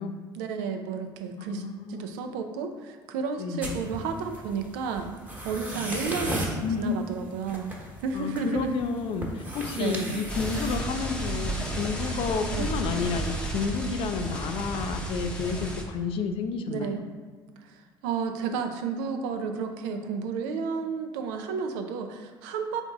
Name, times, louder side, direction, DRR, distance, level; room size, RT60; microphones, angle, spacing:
voice 1, 0.3-1.6 1.9-5.1 5.4-7.7 8.0-8.8 9.7-10.2 12.5-12.7 16.7-17.0 17.6-22.8, right 5 dB, 70° right, 6 dB, 0.5 m, -32 dB
voice 2, 1.4-2.1 3.4-3.8 6.6-7.1 8.1-17.0, left 5 dB, 55° left, 7 dB, 0.5 m, -31 dB
sound 1, 3.6-11.9, right 1 dB, 15° right, 1.2 m, -37 dB
sound 2, 10.3-15.8, right 1 dB, 10° left, 0.8 m, -32 dB
4.0 x 3.5 x 3.6 m, 1.5 s
hypercardioid pair, 60°, 11 cm